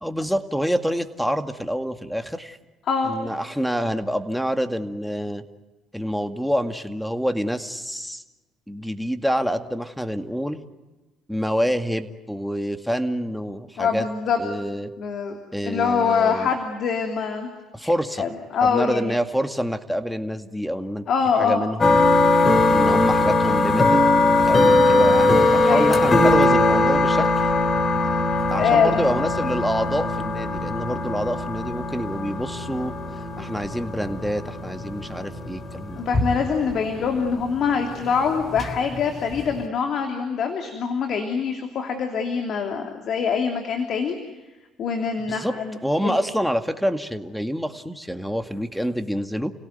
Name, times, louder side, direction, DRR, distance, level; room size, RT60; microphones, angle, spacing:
voice 1, 0.0-2.6 3.0-5.4 5.9-8.2 8.7-10.6 11.3-14.0 14.4-14.9 15.5-16.5 17.7-18.3 18.6-21.1 21.4-22.0 22.7-27.3 28.5-32.9 33.4-36.0 45.2-45.5 45.8-49.5, equal, ahead, 8 dB, 2.2 m, -27 dB
voice 2, 13.8-14.4 15.0-15.4 15.6-17.5 18.2-19.2 21.1-21.6 25.7-26.1 28.3-29.0 33.4-33.5 36.0-44.2 44.8-46.2, left 6 dB, 60° left, 4 dB, 3.0 m, -24 dB
sound 1, 21.8-39.6, left 2 dB, 35° left, 3.4 m, -20 dB
30.0 x 17.5 x 9.4 m, 1.2 s
supercardioid pair, 65°, 0 cm